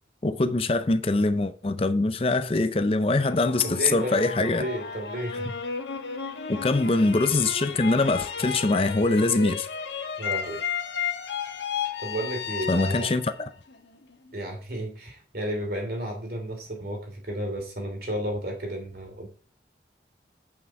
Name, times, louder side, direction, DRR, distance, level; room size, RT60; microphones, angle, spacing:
voice 1, 0.2-4.6 6.5-9.7 12.7-13.3, left 2 dB, 30° left, 0.5 m, -23 dB
sound 1, 3.3-14.3, left 6 dB, 80° left, 1.2 m, -33 dB
voice 2, 3.6-5.6 6.9-7.0 10.2-10.6 12.0-13.1 14.3-19.3, right 1 dB, 55° right, 2.8 m, -33 dB
8.7 x 5.9 x 4.6 m
head